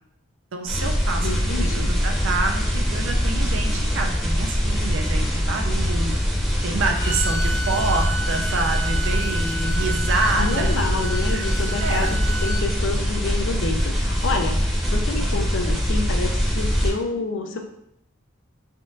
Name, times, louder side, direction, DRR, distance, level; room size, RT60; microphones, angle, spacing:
voice 1, 0.5-1.3 1.6-6.1 6.6-10.7 11.3-11.5 11.8-12.2, right 3 dB, 60° right, 4 dB, 0.4 m, -27 dB
sound 1, 0.7-16.9, equal, ahead, 0.8 m, -23 dB
voice 2, 1.2-1.9 10.4-17.6, left 3 dB, 60° left, 4 dB, 0.4 m, -28 dB
Bowed string instrument, 7.0-12.7, right 2 dB, 40° left, 1.0 m, -32 dB
3.6 x 2.5 x 2.5 m, 0.75 s
head